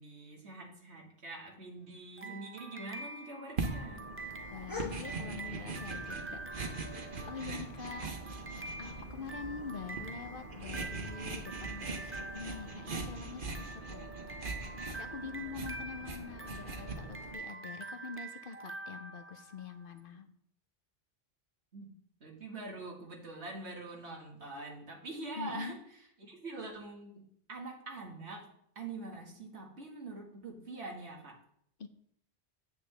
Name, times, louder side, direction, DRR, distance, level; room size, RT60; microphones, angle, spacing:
voice 1, 0.0-4.1 21.7-21.9 22.2-25.8 26.2-28.5 28.8-31.4, right 3 dB, 90° right, -1 dB, 2.1 m, -44 dB
sound 1, 2.2-19.8, right 2 dB, 15° right, 0.4 m, -46 dB
sound 2, 3.6-17.4, right 3 dB, 50° right, 1.3 m, -42 dB
sound 3, 4.1-12.7, left 4 dB, 20° left, 1.1 m, -51 dB
voice 2, 4.5-6.9 7.3-8.1 8.8-14.1 14.4-20.3 25.4-25.8 31.8-31.9, left 5 dB, 60° left, 9 dB, 1.0 m, -45 dB
9.5 x 8.4 x 3.4 m, 0.69 s
omnidirectional pair, 1.1 m